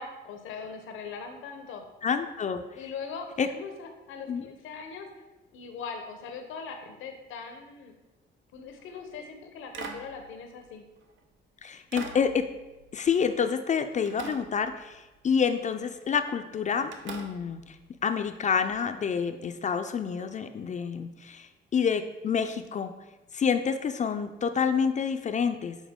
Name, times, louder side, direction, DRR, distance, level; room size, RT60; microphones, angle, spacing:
voice 1, 0.0-1.8 2.8-5.1 5.5-7.9 8.5-10.9, left 5 dB, 85° left, 5 dB, 0.8 m, -40 dB
voice 2, 2.0-2.6 3.4-3.5 4.3-4.5 11.6-12.4 12.9-17.7 18.0-21.5 21.7-22.9 23.3-25.8, left 6 dB, 40° left, 8 dB, 0.4 m, -28 dB
sound 1, 8.7-9.0 9.7-11.2 11.9-13.7 14.1-15.3 15.9-16.2 16.9-18.8 20.2-20.3, right 4 dB, 75° right, 0.7 m, -44 dB
7.2 x 3.9 x 3.6 m, 1.1 s
cardioid pair, 90°, 20 cm